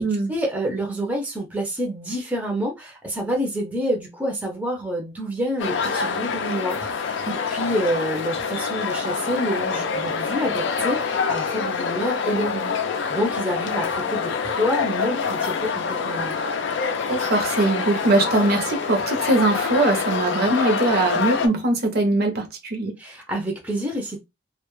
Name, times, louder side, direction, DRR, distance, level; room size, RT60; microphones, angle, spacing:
voice 1, 0.0-7.2 7.5-12.8 13.1-16.5 23.0-24.2, equal, 10° right, 0.5 m, -28 dB
sound 1, 5.6-21.5, left 5 dB, 65° left, 0.4 m, -26 dB
voice 2, 17.1-23.0, right 2 dB, 55° right, 0.6 m, -21 dB
2.1 x 2.0 x 3.0 m
head